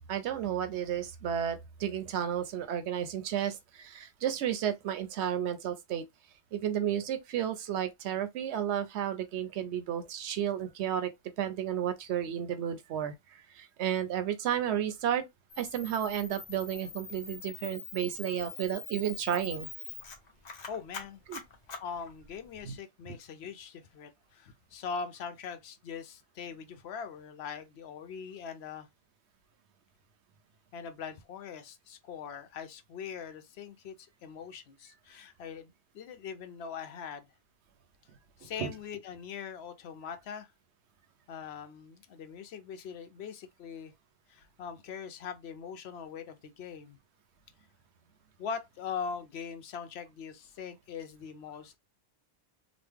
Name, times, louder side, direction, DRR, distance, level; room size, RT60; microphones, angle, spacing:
voice 1, 0.1-6.0 6.5-11.1 11.4-13.1 13.5-15.3 15.6-19.7 21.3-21.4 22.6-22.8 23.1-23.2 38.6-38.7, right 10 dB, 80° right, 0.9 m, -32 dB
Camera, 15.5-22.6, left 5 dB, 45° left, 0.7 m, -44 dB
voice 2, 20.7-21.2 21.8-28.9 30.7-37.3 38.4-40.5 41.3-43.9 44.3-47.0 48.4-51.8, left 6 dB, 70° left, 0.8 m, -41 dB
3.0 x 2.1 x 3.4 m
omnidirectional pair, 1.1 m